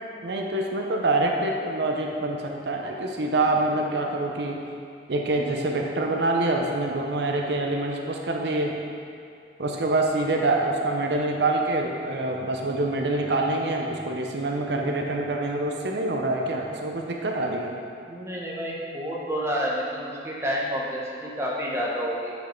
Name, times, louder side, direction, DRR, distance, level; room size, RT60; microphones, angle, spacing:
voice 1, 0.2-4.6 5.1-8.7 9.6-17.7, right 2 dB, 70° right, 1 dB, 0.6 m, -26 dB
voice 2, 18.1-22.3, equal, 15° right, -4 dB, 1.0 m, -29 dB
8.4 x 5.3 x 4.4 m, 2.4 s
head